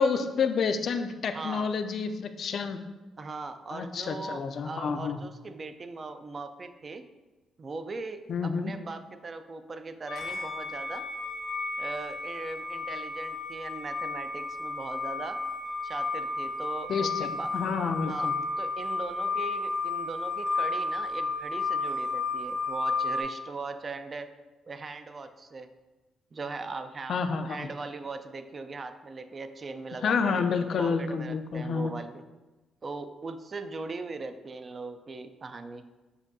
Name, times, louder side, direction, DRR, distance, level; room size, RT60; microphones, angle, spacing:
voice 1, 0.0-2.8 3.7-5.2 8.3-8.7 16.9-18.3 27.1-27.6 30.0-31.9, left 5 dB, 60° left, 9 dB, 0.3 m, -29 dB
voice 2, 1.3-1.7 3.2-7.1 7.6-11.0 11.8-15.4 15.8-17.5 18.1-24.3 24.7-25.7 26.3-27.2 27.5-30.4 30.8-32.2 32.8-35.8, right 3 dB, 35° right, 9 dB, 0.3 m, -39 dB
sound 1, 10.1-23.2, left 3 dB, 90° left, 0.9 m, -32 dB
7.2 x 2.6 x 2.6 m, 1.2 s
cardioid pair, 90°, 0 cm